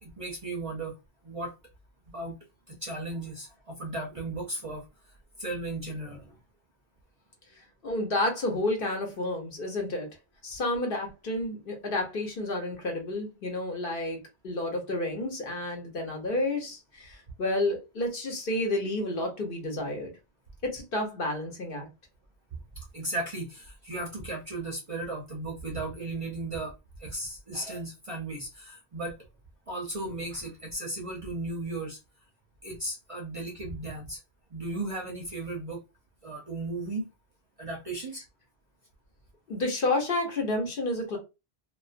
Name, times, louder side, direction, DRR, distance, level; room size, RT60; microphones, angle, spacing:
voice 1, 0.0-0.9 1.2-1.5 2.1-2.4 2.7-6.4 22.8-29.2 29.7-32.0 32.6-34.2 34.5-35.8 36.2-37.1 37.6-38.2, right 2 dB, 45° right, 0.5 m, -36 dB
voice 2, 7.8-10.1 10.4-14.2 14.4-20.1 20.6-21.9 39.5-41.2, left 2 dB, 60° left, 1.0 m, -30 dB
2.3 x 2.2 x 2.4 m
omnidirectional pair, 1.1 m